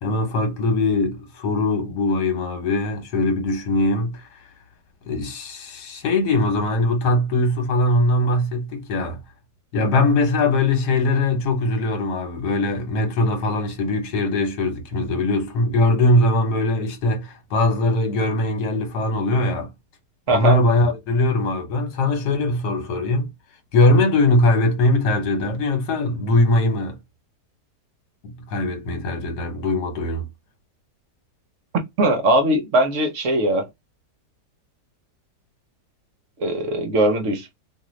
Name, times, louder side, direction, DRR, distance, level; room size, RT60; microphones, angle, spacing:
voice 1, 0.0-4.2 5.0-9.2 9.7-19.7 20.3-23.3 23.7-27.0 28.2-30.3, left 2 dB, 70° left, 1.4 m, -21 dB
voice 2, 32.0-33.7 36.4-37.5, right 1 dB, 60° right, 0.8 m, -20 dB
2.7 x 2.4 x 3.0 m
omnidirectional pair, 1.8 m